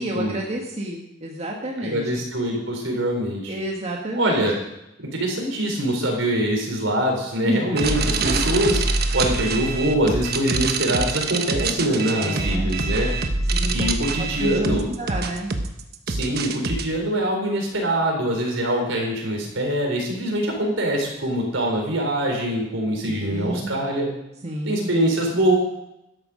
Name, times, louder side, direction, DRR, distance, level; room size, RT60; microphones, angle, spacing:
voice 1, 0.0-2.0 3.5-4.5 7.4-7.6 8.2-8.5 12.0-12.7 13.5-13.9 14.2-15.5 23.1-23.7 24.4-24.9, right 1 dB, 35° right, -1 dB, 1.7 m, -29 dB
voice 2, 1.8-3.6 4.1-4.6 5.0-8.8 9.1-13.1 13.7-14.9 16.1-24.1 24.7-25.6, right 1 dB, 80° right, 1 dB, 4.2 m, -23 dB
sound 1, 7.8-16.8, right 3 dB, 55° right, 1.1 m, -25 dB
13.0 x 11.0 x 5.1 m, 0.87 s
head